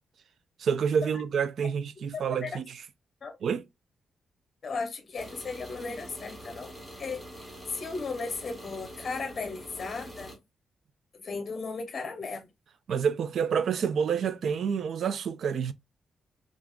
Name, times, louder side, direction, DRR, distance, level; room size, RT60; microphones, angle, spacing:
voice 1, 0.6-2.8 3.4-3.6 12.9-15.7, right 7 dB, 65° right, 0.3 m, -28 dB
voice 2, 2.1-2.5 3.2-3.3 4.6-6.7 7.0-7.2 7.7-10.3 11.1-12.5, left 4 dB, 40° left, 0.7 m, -36 dB
sound 1, 5.1-10.4, equal, 5° right, 1.1 m, -45 dB
3.5 x 2.4 x 2.3 m
cardioid pair, 130°, 0 cm